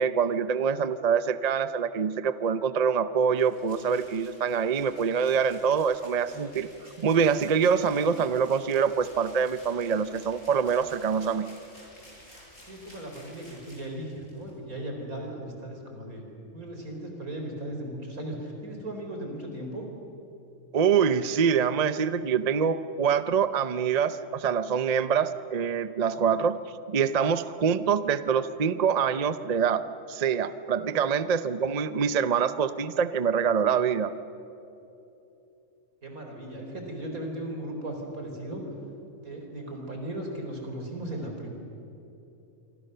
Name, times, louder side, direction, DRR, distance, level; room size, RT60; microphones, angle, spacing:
voice 1, 0.0-6.7 7.0-11.5 20.7-26.6 26.9-34.1, right 6 dB, 40° right, 12 dB, 0.6 m, -25 dB
sound 1, 3.3-14.5, left 1 dB, 65° left, 7.6 m, -52 dB
voice 2, 12.7-16.3 16.5-19.9 26.1-26.3 30.8-31.0 36.0-38.6 39.2-41.5, right 1 dB, 85° right, 2 dB, 4.7 m, -37 dB
26.5 x 25.5 x 6.8 m, 2.8 s
omnidirectional pair, 1.5 m